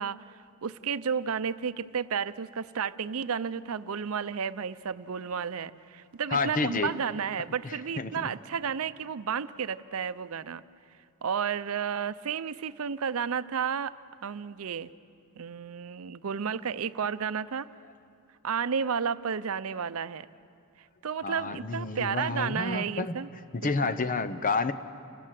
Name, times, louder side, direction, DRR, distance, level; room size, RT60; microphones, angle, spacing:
voice 1, 0.0-10.6 11.2-14.0 14.2-14.9 15.4-17.7 18.4-20.3 21.0-23.3 23.6-24.0, right 6 dB, 80° right, 14 dB, 0.6 m, -32 dB
voice 2, 6.3-6.9 7.6-8.3 21.2-23.2 23.5-24.7, left 3 dB, 40° left, 12 dB, 0.8 m, -30 dB
29.0 x 18.0 x 7.6 m, 2.5 s
head